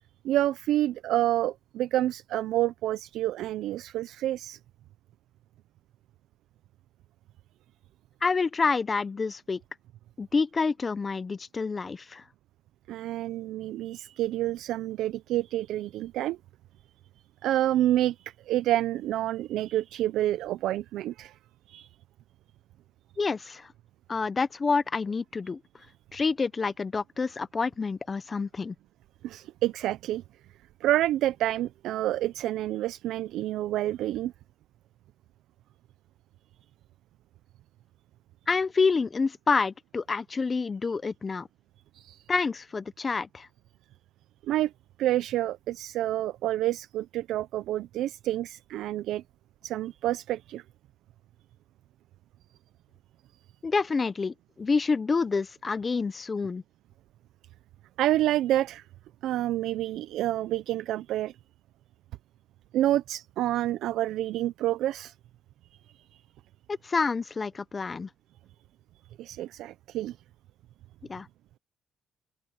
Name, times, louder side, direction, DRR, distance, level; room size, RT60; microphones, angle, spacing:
voice 1, 0.2-4.6 12.9-16.4 17.4-21.4 21.7-21.9 29.2-30.2 30.8-34.3 41.9-42.3 44.4-44.7 45.0-49.2 49.6-50.6 58.0-58.9 59.2-61.4 62.7-65.1 65.9-66.2 69.2-70.2, right 14 dB, 85° right, 0.5 m, -28 dB
voice 2, 8.2-9.6 10.2-12.2 23.2-23.7 24.1-25.6 26.1-28.7 38.5-41.5 42.3-43.5 53.6-56.6 66.7-68.1 71.1-71.3, left 4 dB, 35° left, 0.7 m, -28 dB
open air
cardioid pair, 90°, 0 cm